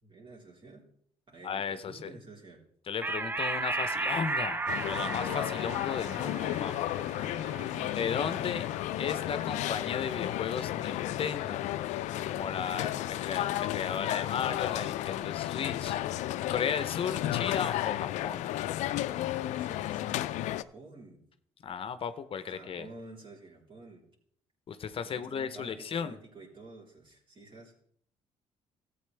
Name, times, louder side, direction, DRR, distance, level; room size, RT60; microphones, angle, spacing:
voice 1, 0.0-0.9 1.3-2.6 6.2-7.9 19.3-21.2 22.4-24.0 25.0-27.7, right 2 dB, 45° right, -1 dB, 3.4 m, -50 dB
voice 2, 1.4-2.1 2.9-4.6 4.8-6.7 7.8-8.7 9.0-11.6 12.3-16.0 16.5-18.5 21.6-22.9 24.7-26.2, left 7 dB, 50° left, 12 dB, 0.7 m, -35 dB
sound 1, 3.0-9.9, right 3 dB, 15° right, 0.5 m, -36 dB
sound 2, 4.7-20.6, left 14 dB, 85° left, 0.4 m, -33 dB
13.5 x 8.4 x 3.3 m, 0.64 s
cardioid pair, 80°, 12 cm